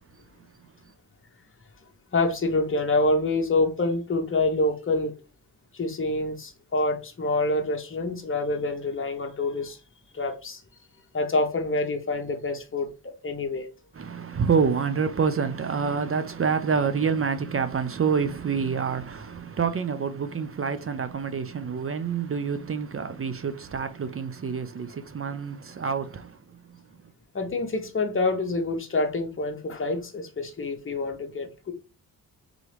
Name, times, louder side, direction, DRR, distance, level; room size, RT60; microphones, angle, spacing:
voice 1, 2.1-5.1 5.7-9.8 10.1-10.6 11.1-13.7 27.3-31.7, left 2 dB, 30° left, 1.1 m, -27 dB
voice 2, 14.0-26.4, right 6 dB, 35° right, 0.6 m, -27 dB
3.9 x 2.9 x 3.3 m
cardioid pair, 70°, 39 cm